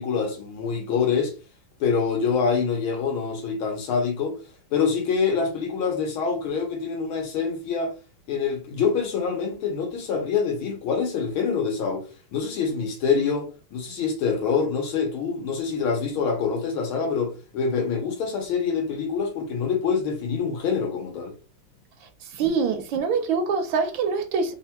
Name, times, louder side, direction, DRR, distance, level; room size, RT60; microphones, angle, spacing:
voice 1, 0.0-1.3 1.8-4.4 4.7-7.9 8.3-12.0 12.3-21.3, left 5 dB, 75° left, 1.8 m, -25 dB
voice 2, 22.2-24.5, right 5 dB, 75° right, 1.2 m, -24 dB
4.1 x 2.3 x 2.8 m
omnidirectional pair, 2.3 m